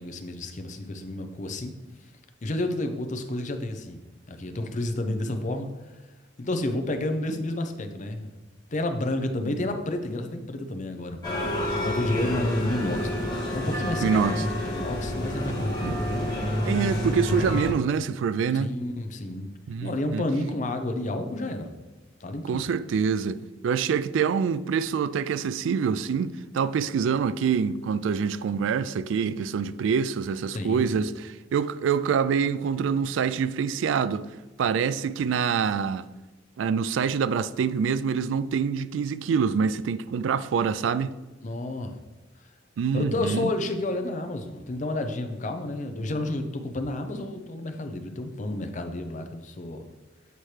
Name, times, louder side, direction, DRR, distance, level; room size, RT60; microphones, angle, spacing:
voice 1, 0.0-1.7 2.4-4.0 4.3-5.7 6.4-8.3 8.7-11.2 11.8-16.3 18.5-19.5 19.8-21.7 22.2-22.6 30.5-31.0 41.4-42.0 42.9-49.9, left 1 dB, 40° left, 0.6 m, -30 dB
sound 1, 11.2-17.7, left 1 dB, 25° left, 2.2 m, -28 dB
voice 2, 14.0-14.5 15.8-16.2 16.7-18.8 19.7-20.2 22.4-34.3 34.6-36.1 36.6-41.2 42.8-43.5, right 6 dB, 90° right, 0.3 m, -26 dB
8.1 x 4.3 x 3.2 m
head